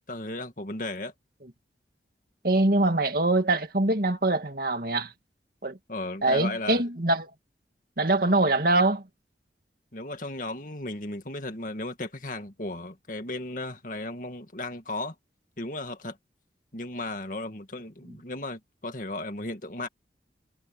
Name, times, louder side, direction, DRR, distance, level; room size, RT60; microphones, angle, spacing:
voice 1, 0.1-1.1 5.9-6.8 8.2-8.4 9.9-15.2 15.6-16.2 16.7-19.9, left 2 dB, 50° left, 2.1 m, -35 dB
voice 2, 2.4-5.1 5.6-5.8 6.2-7.3 8.0-9.0, right 2 dB, 55° right, 2.2 m, -23 dB
head